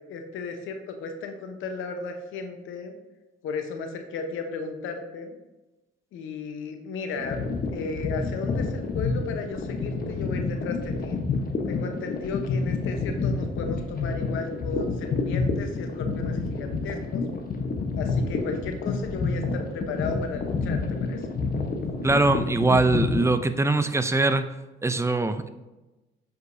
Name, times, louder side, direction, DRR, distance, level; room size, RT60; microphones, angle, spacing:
voice 1, 0.0-3.0 3.4-5.4 6.1-7.4 7.7-11.2 11.7-17.2 17.9-21.4, left 4 dB, 90° left, 5 dB, 1.0 m, -35 dB
sound 1, 7.2-23.3, left 4 dB, 50° left, 1.1 m, -28 dB
voice 2, 22.0-24.5 24.8-25.5, right 2 dB, 15° right, 10 dB, 0.5 m, -22 dB
7.9 x 5.1 x 2.7 m, 1.1 s
cardioid pair, 90°, 20 cm